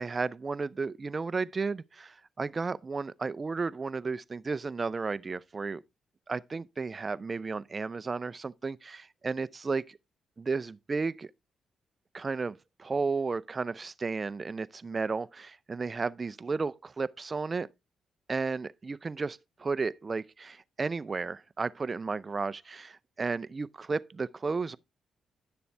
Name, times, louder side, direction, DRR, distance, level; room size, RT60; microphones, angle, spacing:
voice 1, 0.0-5.8 6.3-10.0 10.4-11.3 12.1-17.7 18.3-24.8, right 4 dB, 35° right, 0.5 m, -33 dB
11.5 x 6.9 x 3.3 m
supercardioid pair, 65°, 0 cm